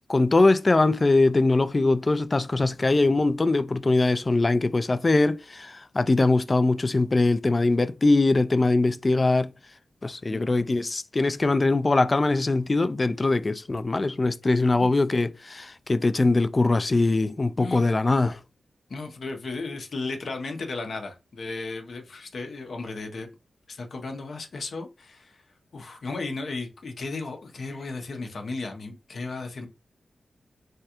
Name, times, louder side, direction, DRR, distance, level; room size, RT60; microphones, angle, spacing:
voice 1, 0.1-9.5 10.0-18.4, left 2 dB, 40° left, 0.3 m, -22 dB
voice 2, 10.3-10.7 14.5-14.9 17.6-17.8 18.9-23.3 23.7-25.4 25.7-29.7, left 3 dB, 70° left, 0.7 m, -35 dB
3.3 x 2.4 x 2.9 m
cardioid pair, 45°, 0 cm